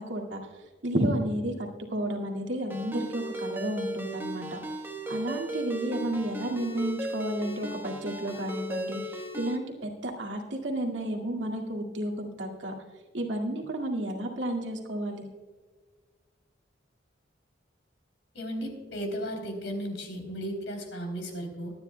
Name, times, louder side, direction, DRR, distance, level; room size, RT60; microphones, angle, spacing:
voice 1, 0.0-4.6 5.1-12.7 13.1-15.3, right 1 dB, 75° right, 0 dB, 2.1 m, -32 dB
Ringtone, 2.7-9.6, right 1 dB, 10° right, 1.2 m, -36 dB
voice 2, 18.3-21.7, equal, 70° left, 3 dB, 3.4 m, -35 dB
23.0 x 10.0 x 2.3 m, 1.4 s
head